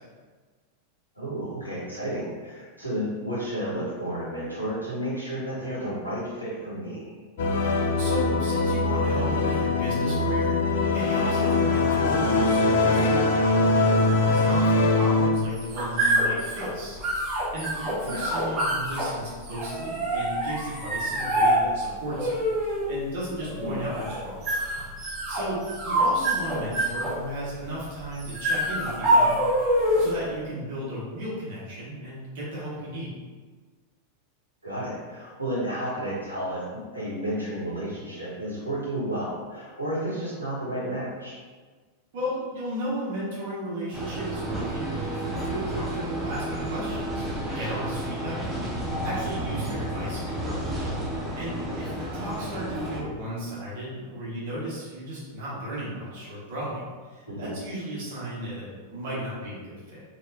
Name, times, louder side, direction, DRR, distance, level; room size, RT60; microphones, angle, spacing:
voice 1, 1.1-7.2 18.0-18.3 23.6-23.8 34.6-41.4 57.3-57.5, right 1 dB, 90° right, -9 dB, 1.5 m, -32 dB
sound 1, 7.4-15.3, left 3 dB, 55° left, 0.5 m, -22 dB
voice 2, 8.0-24.5 25.3-29.4 29.7-33.2 42.1-47.2 47.5-50.7 51.3-60.0, right 1 dB, 50° right, -8 dB, 1.5 m, -35 dB
sound 2, 15.3-30.3, right 1 dB, 30° right, 1.2 m, -26 dB
sound 3, 43.9-53.0, right 1 dB, 10° right, 0.6 m, -31 dB
4.2 x 2.9 x 2.6 m, 1.4 s
figure-of-eight pair, 90°, 0 cm